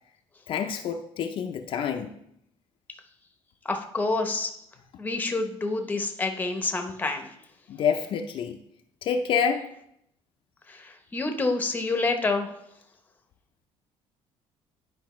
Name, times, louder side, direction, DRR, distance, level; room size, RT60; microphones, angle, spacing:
voice 1, 0.5-2.1 7.7-8.6 9.0-9.7, left 7 dB, 50° left, 4 dB, 0.5 m, -27 dB
voice 2, 3.6-4.5 5.0-7.3 10.7-12.5, left 3 dB, 15° left, 5 dB, 0.8 m, -28 dB
10.5 x 4.8 x 3.1 m, 0.74 s
cardioid pair, 145°, 11 cm